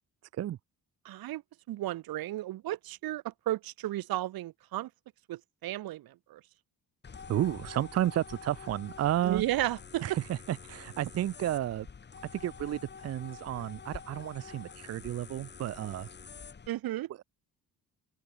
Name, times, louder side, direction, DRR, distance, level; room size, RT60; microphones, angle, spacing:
voice 1, 1.0-1.4 1.7-4.9 5.3-6.4 9.2-10.2 16.7-17.1, right 15 dB, 75° right, 0.9 m, -34 dB
sound 1, 7.0-16.7, left 5 dB, 30° left, 4.0 m, -47 dB
voice 2, 7.3-9.4 10.0-11.9 12.3-16.1, right 12 dB, 45° right, 0.5 m, -32 dB
open air
cardioid pair, 170°, 36 cm